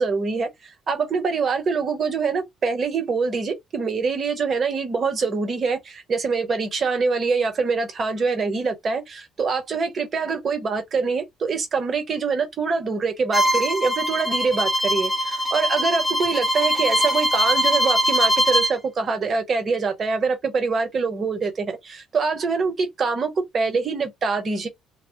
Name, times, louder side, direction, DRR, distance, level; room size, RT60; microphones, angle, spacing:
voice 1, 0.0-24.7, right 4 dB, 50° right, 0.9 m, -24 dB
Bowed string instrument, 13.3-18.7, equal, 5° left, 0.8 m, -22 dB
2.1 x 2.0 x 2.9 m
supercardioid pair, 65°, 0 cm